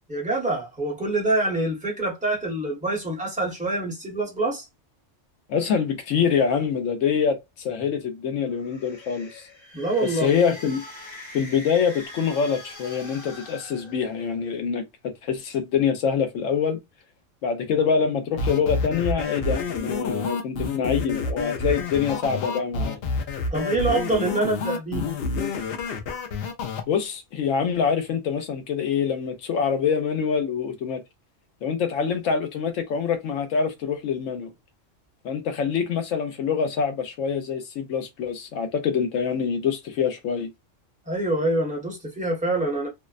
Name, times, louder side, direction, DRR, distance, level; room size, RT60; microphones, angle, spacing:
voice 1, 0.1-4.7 9.7-10.3 23.5-25.0 41.1-42.9, right 2 dB, 5° right, 0.9 m, -25 dB
voice 2, 5.5-9.4 10.0-10.8 11.3-16.8 17.4-23.0 26.9-31.0 31.6-34.5 35.2-40.5, left 6 dB, 85° left, 1.0 m, -25 dB
sound 1, 8.5-14.6, left 2 dB, 25° left, 0.8 m, -43 dB
sound 2, 18.4-26.8, left 4 dB, 65° left, 0.7 m, -28 dB
2.6 x 2.0 x 2.4 m
omnidirectional pair, 1.3 m